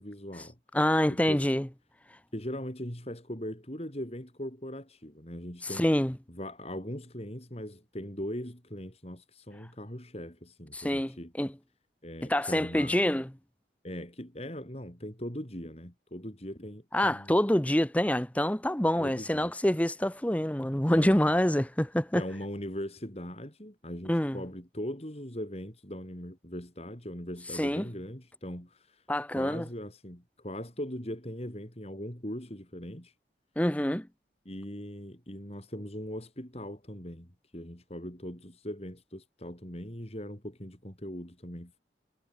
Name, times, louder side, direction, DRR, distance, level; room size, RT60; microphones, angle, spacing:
voice 1, 0.0-0.6 1.1-1.5 2.3-5.9 6.3-11.3 12.0-13.0 13.8-17.3 19.0-19.5 20.9-21.3 22.1-29.0 29.4-33.1 34.4-41.8, equal, 35° left, 4.4 m, -40 dB
voice 2, 0.7-1.7 5.7-6.1 10.7-11.5 12.2-13.3 16.9-22.2 24.1-24.4 27.5-27.9 29.1-29.7 33.6-34.1, left 1 dB, 10° left, 0.9 m, -26 dB
head